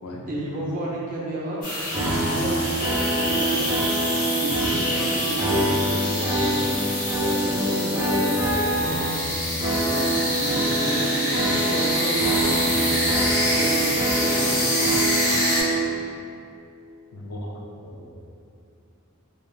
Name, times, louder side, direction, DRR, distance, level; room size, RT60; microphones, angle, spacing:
voice 1, 0.3-1.6 1.9-3.7 4.3-6.7 7.2-9.1 9.9-14.6, right 1 dB, 35° right, -5 dB, 0.4 m, -32 dB
sound 1, 1.6-15.6, left 1 dB, 35° left, 0.7 m, -26 dB
sound 2, 1.9-15.7, right 1 dB, 5° right, 0.9 m, -25 dB
voice 2, 17.1-18.1, left 1 dB, 85° left, -2 dB, 0.4 m, -37 dB
3.1 x 2.2 x 2.3 m, 2.6 s
head